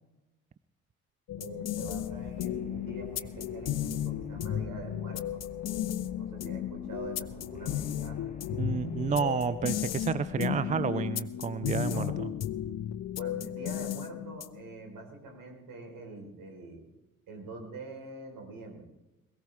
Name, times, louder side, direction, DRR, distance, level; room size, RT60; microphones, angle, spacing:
sound 1, 1.3-14.7, left 11 dB, 40° left, 0.8 m, -34 dB
voice 1, 1.4-5.4 6.2-8.3 11.8-12.2 13.2-16.8 17.3-18.8, right 2 dB, 50° right, 2 dB, 4.5 m, -44 dB
sound 2, 1.8-10.2, left 2 dB, 20° left, 1.5 m, -50 dB
voice 2, 8.5-12.3, right 6 dB, 20° right, 15 dB, 0.4 m, -30 dB
21.5 x 16.0 x 3.6 m, 0.97 s
figure-of-eight pair, 50°, 41 cm